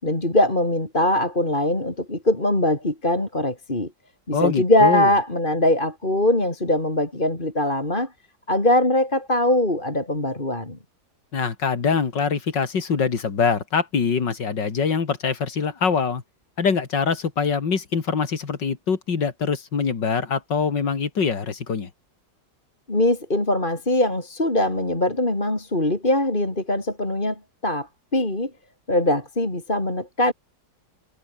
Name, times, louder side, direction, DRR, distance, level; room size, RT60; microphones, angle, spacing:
voice 1, 0.0-3.9 4.3-8.1 8.5-10.8 22.9-28.5 28.9-30.3, left 1 dB, 25° left, 4.4 m, -22 dB
voice 2, 4.3-5.1 11.3-16.2 16.6-21.9, left 5 dB, 85° left, 3.1 m, -24 dB
omnidirectional pair, 1.9 m